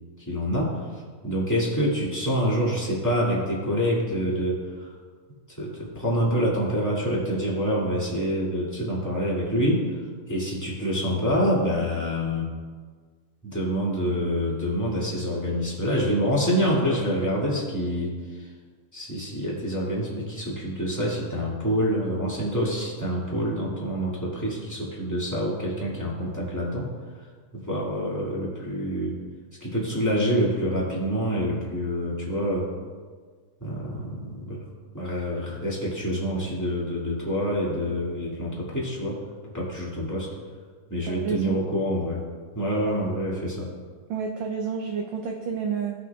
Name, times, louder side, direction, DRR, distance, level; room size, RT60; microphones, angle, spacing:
voice 1, 0.3-0.8 1.2-4.9 5.6-9.8 10.3-12.5 13.4-18.1 18.9-26.8 27.5-29.1 29.6-32.6 33.6-34.6 34.9-39.1 39.5-40.3 40.9-42.2 42.5-43.7, equal, 10° left, -7 dB, 1.2 m, -26 dB
voice 2, 41.0-41.6 44.1-45.9, right 6 dB, 80° right, 2 dB, 1.6 m, -29 dB
18.0 x 6.1 x 2.4 m, 1.5 s
omnidirectional pair, 3.8 m